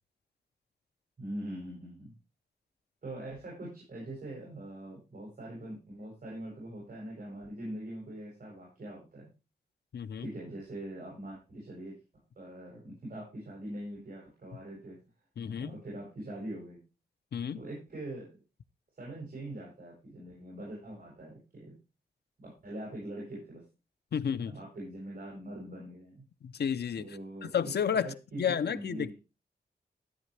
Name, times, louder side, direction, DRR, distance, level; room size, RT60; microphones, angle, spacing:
voice 1, 1.2-2.1 3.0-9.3 10.2-11.9 12.4-15.0 15.6-16.8 17.5-18.4 19.0-21.7 22.4-23.6 24.4-26.2 27.0-29.1, right 1 dB, 55° right, 7.4 m, -43 dB
voice 2, 9.9-10.3 15.4-15.8 17.3-17.6 24.1-24.5 26.4-27.2 27.4-28.1 28.4-29.1, left 7 dB, 80° left, 0.7 m, -31 dB
14.0 x 9.2 x 3.3 m
wide cardioid pair, 130°, 17 cm